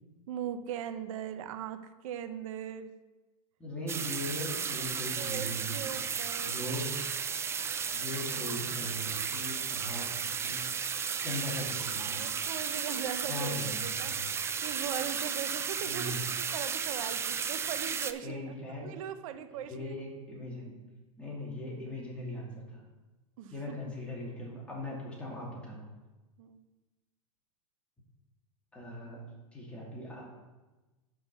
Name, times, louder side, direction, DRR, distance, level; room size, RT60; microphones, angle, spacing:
voice 1, 0.3-2.9 5.2-6.6 12.1-18.5 18.8-20.0 23.4-23.9 26.4-26.6, right 9 dB, 65° right, 9 dB, 0.8 m, -40 dB
voice 2, 3.6-5.9 6.4-6.9 7.9-10.7 11.2-12.3 13.2-14.1 15.8-16.2 18.2-18.9 19.6-20.8 21.2-22.8 23.5-25.8 28.7-29.2 29.5-30.2, left 1 dB, 5° left, -5 dB, 2.5 m, -39 dB
sound 1, 3.9-18.1, right 6 dB, 15° right, 0.3 m, -34 dB
6.3 x 5.3 x 6.8 m, 1.2 s
hypercardioid pair, 120°, 18 cm